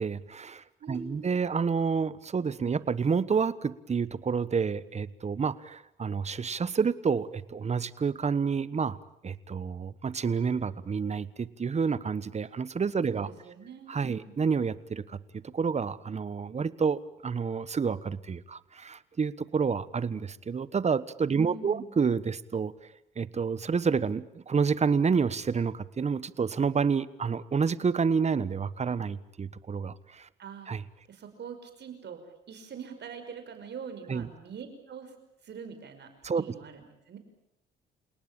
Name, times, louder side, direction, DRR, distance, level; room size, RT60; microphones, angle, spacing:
voice 1, 0.0-9.0 9.2-13.3 13.9-22.7 23.2-30.3 30.7-30.8 34.1-34.3 36.2-36.4, right 5 dB, 35° right, 17 dB, 1.3 m, -29 dB
voice 2, 0.8-1.3 13.1-14.3 21.4-21.9 30.4-30.7 31.1-32.2 32.5-35.1 35.4-36.1 36.4-37.2, right 6 dB, 60° right, 8 dB, 5.7 m, -43 dB
29.0 x 18.5 x 9.0 m, 0.82 s
cardioid pair, 90°, 20 cm